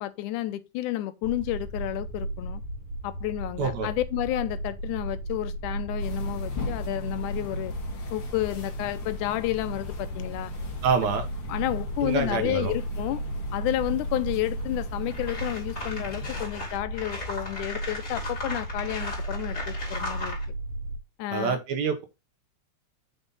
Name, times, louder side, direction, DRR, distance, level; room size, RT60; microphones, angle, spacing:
voice 1, 0.0-2.6 3.0-7.7 8.1-10.5 11.5-13.2 13.5-20.4 21.2-21.6, left 14 dB, 85° left, 2.1 m, -31 dB
sound 1, 1.2-21.0, right 1 dB, 50° right, 2.3 m, -35 dB
voice 2, 3.6-3.9 10.8-11.3 12.0-12.7 21.3-22.0, right 5 dB, 70° right, 2.1 m, -26 dB
sound 2, 6.0-16.4, left 6 dB, 50° left, 2.3 m, -41 dB
sound 3, 14.6-14.7 15.1-20.4, left 2 dB, 20° left, 2.7 m, -37 dB
6.0 x 5.4 x 3.8 m
omnidirectional pair, 3.5 m